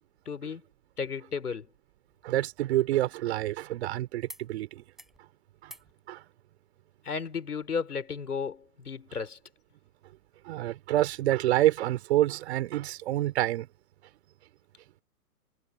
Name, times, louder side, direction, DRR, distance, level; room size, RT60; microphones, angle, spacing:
voice 1, 0.3-0.6 1.0-1.7 7.1-9.4, left 5 dB, 75° left, 3.6 m, -34 dB
voice 2, 2.2-4.8 5.6-5.7 6.1-6.2 10.5-13.7, right 14 dB, 45° right, 3.9 m, -27 dB
sound 1, 4.3-4.5 4.8-5.2 5.6-5.9 7.3-7.4, equal, ahead, 6.5 m, -52 dB
figure-of-eight pair, 120°, 46 cm